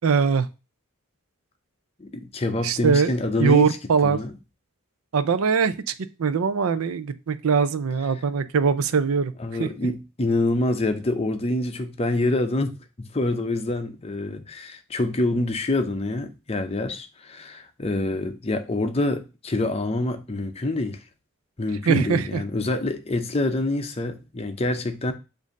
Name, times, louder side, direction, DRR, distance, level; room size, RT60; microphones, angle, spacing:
voice 1, 0.0-0.5 2.6-3.1 3.4-4.2 5.1-5.9 6.2-9.3 9.6-9.7 21.8-22.4, right 5 dB, 85° right, 0.5 m, -21 dB
voice 2, 2.0-3.8 4.0-4.3 9.4-21.0 21.6-25.1, left 2 dB, 30° left, 0.6 m, -26 dB
7.3 x 2.7 x 5.2 m
head